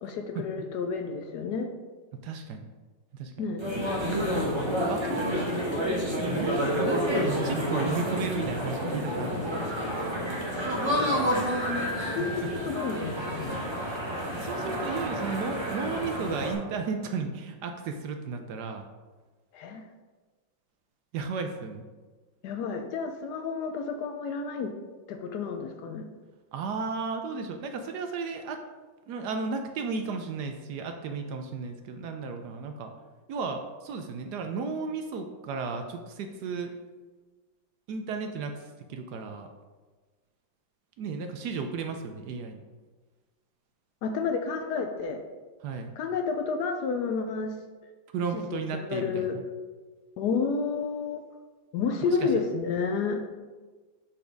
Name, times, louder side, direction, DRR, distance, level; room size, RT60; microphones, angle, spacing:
voice 1, 0.0-1.7 3.4-3.7 9.1-10.1 10.8-11.4 12.1-13.6 19.5-19.8 22.4-24.7 25.1-26.0 44.0-45.2 46.0-47.5 48.3-49.4 50.2-51.2 51.7-53.3, left 5 dB, 70° left, 5 dB, 1.0 m, -31 dB
voice 2, 2.2-2.7 3.1-3.3 4.8-5.4 6.2-9.7 12.0-12.3 14.0-18.9 21.1-21.8 26.5-28.6 29.1-32.9 33.3-36.7 37.9-39.5 41.0-42.6 45.6-45.9 48.1-49.2 52.0-52.3, right 4 dB, 70° right, 5 dB, 1.0 m, -34 dB
sound 1, 3.6-16.5, equal, 20° right, 0.7 m, -29 dB
5.8 x 4.2 x 5.1 m, 1.3 s
omnidirectional pair, 2.0 m